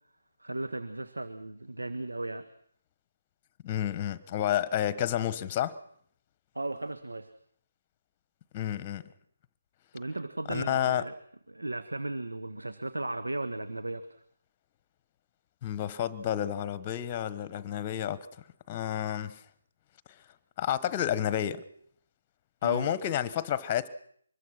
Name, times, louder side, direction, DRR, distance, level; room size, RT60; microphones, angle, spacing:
voice 1, 0.4-2.5 6.5-7.3 9.9-11.1 11.5-14.1 22.6-22.9, right 2 dB, 80° right, 1.5 m, -36 dB
voice 2, 3.6-5.8 8.5-9.0 10.5-11.1 15.6-18.3 18.7-19.4 20.6-21.6 22.6-23.9, left 11 dB, 25° left, 1.2 m, -30 dB
25.0 x 21.5 x 6.2 m
figure-of-eight pair, 150°, 0 cm